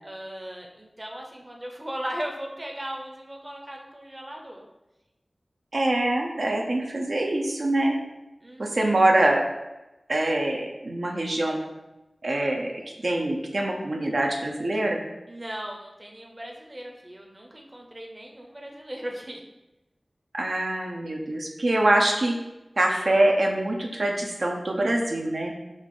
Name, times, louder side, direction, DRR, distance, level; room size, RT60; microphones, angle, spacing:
voice 1, 0.0-4.7 8.4-9.0 15.3-19.4, equal, 25° right, 0 dB, 0.7 m, -37 dB
voice 2, 5.7-8.0 8.6-9.4 10.1-11.6 12.2-12.7 13.0-15.0 20.3-22.3 22.8-25.5, right 1 dB, 70° right, 0 dB, 0.6 m, -24 dB
5.4 x 2.4 x 3.7 m, 0.99 s
wide cardioid pair, 70°, 0 cm